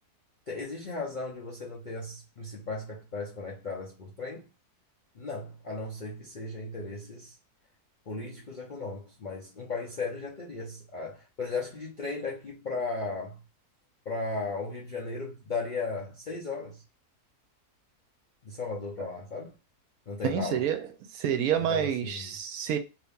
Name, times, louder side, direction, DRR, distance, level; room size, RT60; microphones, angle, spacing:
voice 1, 0.5-4.5 5.2-7.3 8.1-13.4 14.1-16.8 18.4-19.5 20.1-20.6 21.5-22.3, left 3 dB, 60° left, 0.5 m, -36 dB
voice 2, 20.2-20.9 21.1-22.8, right 9 dB, 70° right, 1.0 m, -28 dB
2.8 x 2.7 x 3.5 m
omnidirectional pair, 1.7 m